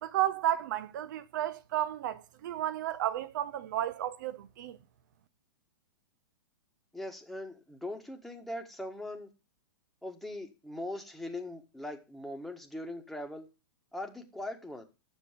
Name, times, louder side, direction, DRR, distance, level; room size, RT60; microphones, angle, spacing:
voice 1, 0.0-4.8, right 12 dB, 55° right, 1.0 m, -32 dB
voice 2, 6.9-9.3 10.0-13.5 13.9-14.9, left 1 dB, ahead, 1.5 m, -40 dB
7.9 x 6.8 x 5.0 m
figure-of-eight pair, 110°, 12 cm